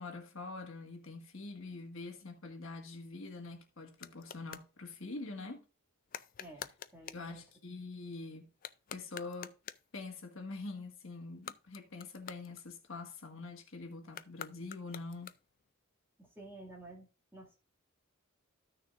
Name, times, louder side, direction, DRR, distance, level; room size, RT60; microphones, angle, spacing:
voice 1, 0.0-5.6 7.1-8.5 8.9-9.5 9.9-15.3, left 3 dB, 60° left, 1.7 m, -45 dB
sound 1, 3.0-4.7 6.1-7.3 8.5-10.0 11.3-13.1 14.1-15.7, left 9 dB, 40° left, 0.4 m, -48 dB
voice 2, 6.4-7.4 16.2-17.1 17.3-17.6, right 1 dB, 10° right, 2.1 m, -52 dB
14.0 x 6.5 x 2.5 m
head